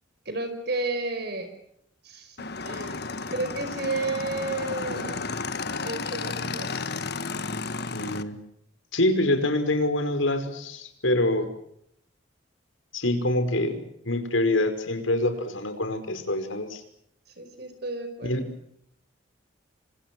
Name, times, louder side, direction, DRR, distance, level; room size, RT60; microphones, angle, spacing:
voice 1, 0.3-1.5 2.0-2.4 2.7-3.0 3.3-5.3 5.8-7.0 17.4-18.4, right 2 dB, 55° right, 8 dB, 5.1 m, -32 dB
Motorcycle / Engine, 2.4-8.2, left 4 dB, 55° left, 1.6 m, -32 dB
voice 2, 7.9-8.4 8.9-11.5 12.9-16.8 18.2-18.5, left 1 dB, 85° left, 8 dB, 5.3 m, -25 dB
29.5 x 25.5 x 6.2 m, 0.73 s
head